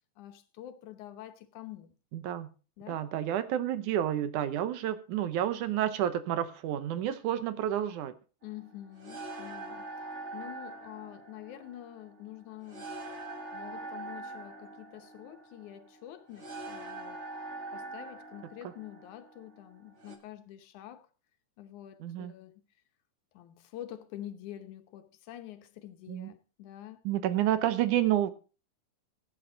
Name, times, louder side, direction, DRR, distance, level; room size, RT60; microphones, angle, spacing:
voice 1, 0.2-1.9 2.8-3.1 8.4-13.0 13.5-17.2 17.7-21.1 21.6-22.6 23.3-27.0, left 12 dB, 75° left, 2.3 m, -47 dB
voice 2, 2.1-2.5 2.9-8.1 22.0-22.3 26.1-26.3 27.1-28.3, right 11 dB, 75° right, 2.3 m, -30 dB
sound 1, 8.4-20.2, right 2 dB, 45° right, 0.9 m, -43 dB
16.5 x 8.8 x 3.9 m
omnidirectional pair, 3.7 m